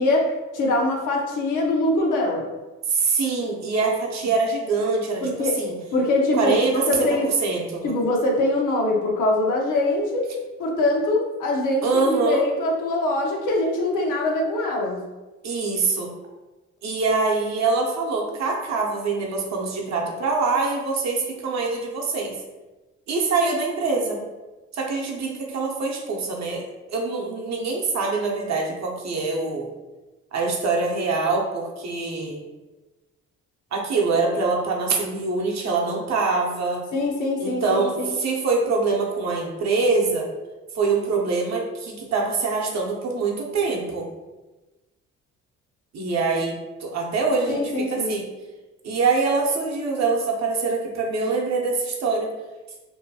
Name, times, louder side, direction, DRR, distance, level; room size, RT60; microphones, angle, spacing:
voice 1, 0.0-2.4 5.2-5.6 5.9-7.3 7.8-10.3 10.6-15.0 36.9-38.1 47.5-48.2, left 2 dB, 75° left, 0 dB, 0.7 m, -23 dB
voice 2, 2.9-5.7 6.4-7.9 11.8-12.5 15.4-16.1 16.8-22.4 23.1-24.2 24.7-26.6 26.9-29.7 30.3-32.4 33.7-36.8 37.4-40.3 40.8-44.1 45.9-46.5 46.8-48.2 48.8-52.3, right 4 dB, 60° right, -1 dB, 0.7 m, -24 dB
2.7 x 2.2 x 2.7 m, 1.1 s
cardioid pair, 75°, 31 cm